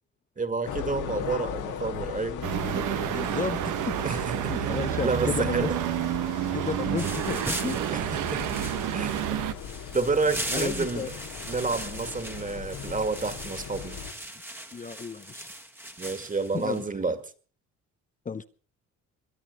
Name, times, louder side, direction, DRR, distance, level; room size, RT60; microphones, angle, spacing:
voice 1, 0.4-2.4 4.0-4.7 5.0-5.8 7.9-8.4 8.9-9.3 9.9-11.1 11.5-14.0 16.0-17.2, right 4 dB, 25° right, 11 dB, 2.1 m, -29 dB
sound 1, 0.6-14.1, left 8 dB, 80° left, 2.4 m, -38 dB
voice 2, 2.3-2.8 3.1-4.0 4.5-5.7 6.5-7.9 10.5-11.1 14.7-15.5 16.5-16.8 18.3-18.4, left 5 dB, 25° left, 11 dB, 0.7 m, -33 dB
sound 2, 2.4-9.5, right 12 dB, 85° right, 1.1 m, -29 dB
sound 3, 7.0-16.8, right 1 dB, 5° right, 1.5 m, -39 dB
22.0 x 9.1 x 6.7 m, 0.43 s
cardioid pair, 90°, 30 cm